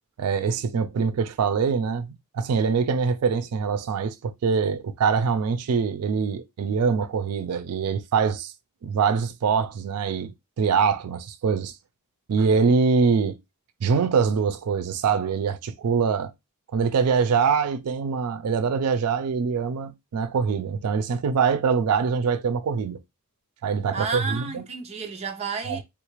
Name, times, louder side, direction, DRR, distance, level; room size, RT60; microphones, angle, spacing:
voice 1, 0.2-8.5 8.8-11.7 12.3-13.4 13.8-16.3 16.7-23.0 23.6-24.6 25.6-25.8, right 5 dB, 90° right, 0.4 m, -24 dB
voice 2, 23.9-25.8, right 4 dB, 30° right, 0.5 m, -31 dB
3.6 x 2.4 x 3.0 m
head